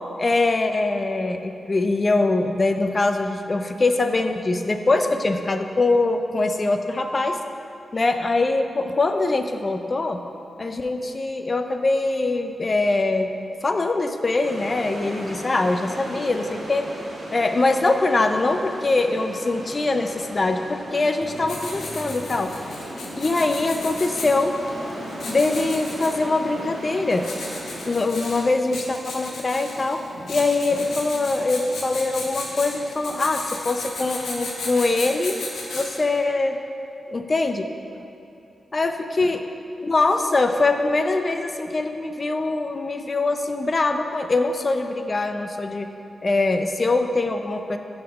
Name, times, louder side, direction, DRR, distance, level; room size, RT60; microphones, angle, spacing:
voice 1, 0.1-7.4 7.9-10.2 10.6-13.3 13.6-16.9 17.3-22.5 23.1-24.6 25.3-27.3 27.9-30.0 30.3-35.4 35.7-36.6 37.1-37.7 38.7-39.4 39.8-45.9 46.2-47.8, left 2 dB, 40° left, 6 dB, 0.4 m, -23 dB
sound 1, 14.4-28.0, right 1 dB, 70° right, 1.6 m, -37 dB
Writing, 21.2-36.2, left 2 dB, 85° left, 0.9 m, -35 dB
5.6 x 4.5 x 5.2 m, 2.7 s
cardioid pair, 70°, 0 cm